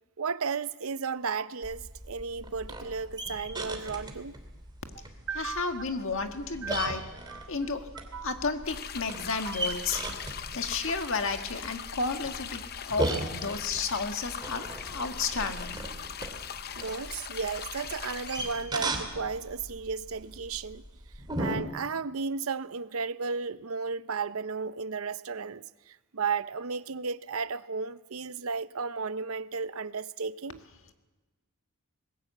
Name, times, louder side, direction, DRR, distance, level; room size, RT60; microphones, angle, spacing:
voice 1, 0.2-4.3 5.3-5.7 6.6-7.0 7.3-7.5 8.1-8.3 9.3-9.6 16.8-20.8 21.4-30.6, right 5 dB, 70° right, 0.7 m, -34 dB
sound 1, 1.6-21.6, right 2 dB, 20° right, 2.7 m, -38 dB
voice 2, 5.4-7.1 7.5-7.9 8.2-10.0 10.5-15.8, left 4 dB, 65° left, 1.7 m, -32 dB
sound 2, 8.6-18.7, left 8 dB, 50° left, 0.7 m, -40 dB
20.5 x 17.0 x 8.3 m
head